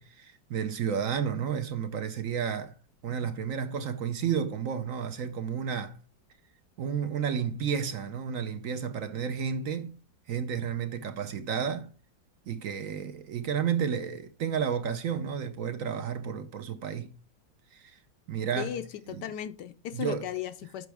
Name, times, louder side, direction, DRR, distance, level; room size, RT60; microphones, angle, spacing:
voice 1, 0.0-2.8 3.0-6.0 6.8-10.0 10.3-11.9 12.5-17.1 17.7-18.0 18.3-18.8 19.1-19.3 19.9-20.3, right 7 dB, 65° right, 0.8 m, -32 dB
voice 2, 18.6-20.9, left 10 dB, 70° left, 1.1 m, -36 dB
9.2 x 6.2 x 3.5 m
omnidirectional pair, 2.1 m